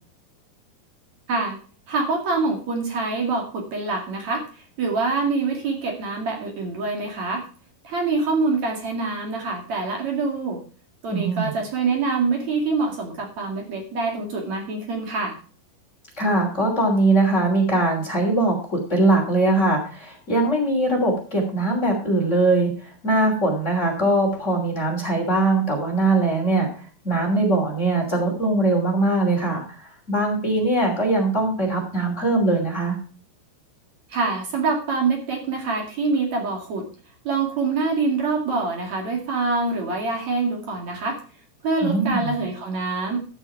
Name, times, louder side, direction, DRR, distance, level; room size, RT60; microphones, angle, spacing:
voice 1, 1.3-1.6 1.9-7.5 7.8-10.6 11.0-15.4 34.1-36.9 37.2-41.2 41.6-43.2, right 3 dB, 45° right, 2 dB, 3.0 m, -25 dB
voice 2, 11.1-11.5 16.2-33.0 41.8-42.3, right 2 dB, 20° left, 1 dB, 2.8 m, -21 dB
13.5 x 6.3 x 5.7 m, 0.40 s
omnidirectional pair, 5.1 m